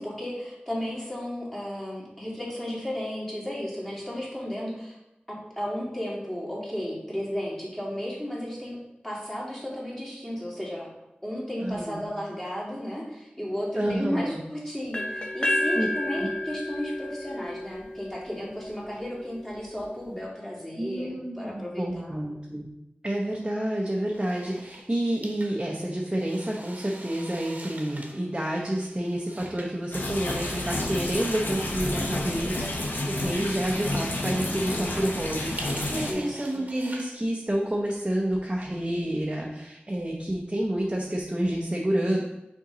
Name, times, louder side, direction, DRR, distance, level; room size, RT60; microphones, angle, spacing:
voice 1, 0.0-5.0 5.6-8.8 9.0-10.9 11.2-22.2 32.0-32.5 36.1-36.4 42.0-42.2, equal, 10° left, -5 dB, 2.2 m, -34 dB
voice 2, 11.6-12.0 13.7-14.4 15.7-15.9 16.2-16.3 20.8-22.7 23.0-42.2, right 1 dB, 25° right, -1 dB, 0.8 m, -29 dB
sound 1, 14.9-18.8, left 1 dB, 25° left, 0.7 m, -30 dB
sound 2, 24.1-38.7, right 1 dB, 45° right, 1.1 m, -46 dB
sound 3, 29.9-36.1, left 1 dB, 65° left, 1.0 m, -30 dB
5.8 x 4.5 x 3.8 m, 0.91 s
wide cardioid pair, 60°, 4 cm